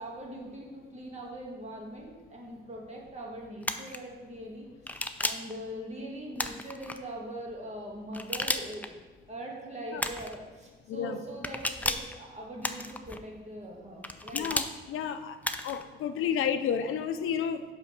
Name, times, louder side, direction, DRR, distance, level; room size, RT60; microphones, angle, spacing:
voice 1, 0.0-8.9 9.3-14.5, right 1 dB, 35° right, -1 dB, 1.9 m, -41 dB
sound 1, 3.6-4.0 4.9-5.5 6.4-7.0 8.1-8.9 10.0-10.4 11.4-12.1 12.6-13.2 14.0-14.7 15.4-15.8, left 1 dB, 5° left, 0.4 m, -33 dB
voice 2, 14.3-15.4 15.6-17.6, left 8 dB, 90° left, 9 dB, 0.5 m, -31 dB
5.7 x 5.0 x 5.9 m, 1.3 s
cardioid pair, 80°, 21 cm